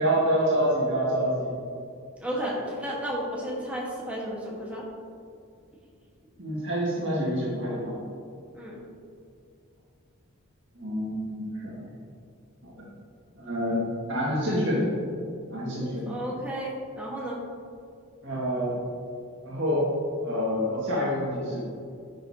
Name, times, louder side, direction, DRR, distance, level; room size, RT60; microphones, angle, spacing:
voice 1, 0.0-1.5 6.4-8.0 10.8-11.7 12.6-12.7 13.4-14.9 15.5-16.2 18.2-18.7 19.4-19.9 20.2-21.6, equal, 60° right, -7 dB, 1.9 m, -27 dB
voice 2, 2.2-4.8 8.5-8.8 16.1-17.4, equal, 5° right, -5 dB, 1.4 m, -33 dB
9.7 x 6.3 x 2.9 m, 2.4 s
head